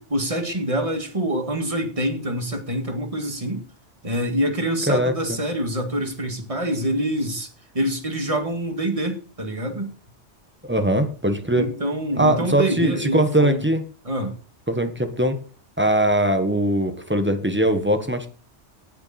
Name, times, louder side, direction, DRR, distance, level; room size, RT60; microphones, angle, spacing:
voice 1, 0.0-3.6 4.0-7.5 7.7-9.9 11.5-13.6 14.0-14.4, right 1 dB, 30° right, 4 dB, 2.0 m, -26 dB
voice 2, 10.6-11.7 12.2-13.8 14.7-15.4 15.8-18.3, right 1 dB, 10° right, 7 dB, 1.2 m, -21 dB
17.5 x 6.3 x 4.2 m, 0.39 s
omnidirectional pair, 1.2 m